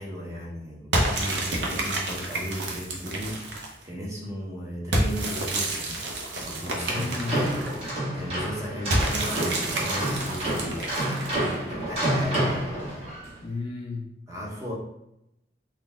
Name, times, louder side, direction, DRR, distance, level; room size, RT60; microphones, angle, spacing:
voice 1, 0.0-6.1 6.4-7.1 7.4-7.6 8.1-10.9 11.2-12.6 14.3-14.7, equal, 15° right, -4 dB, 0.9 m, -36 dB
sound 1, 0.9-3.8 4.9-7.9 8.9-11.5, right 1 dB, 80° right, 0.7 m, -29 dB
sound 2, 6.6-13.3, right 1 dB, 35° right, 1.3 m, -29 dB
voice 2, 6.8-7.5 13.4-14.2, left 3 dB, 30° left, 0 dB, 0.3 m, -33 dB
3.9 x 2.3 x 3.5 m, 0.83 s
head